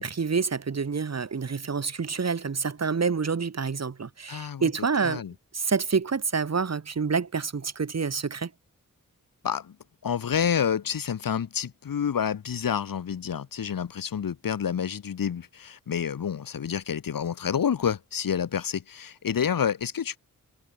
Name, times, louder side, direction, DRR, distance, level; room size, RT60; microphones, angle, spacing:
voice 1, 0.0-5.2 5.5-8.5, right 5 dB, 50° right, 1.7 m, -27 dB
voice 2, 4.3-4.7 5.0-5.3 9.4-9.8 10.0-20.2, left 8 dB, 80° left, 1.9 m, -28 dB
cardioid pair, 45°, 33 cm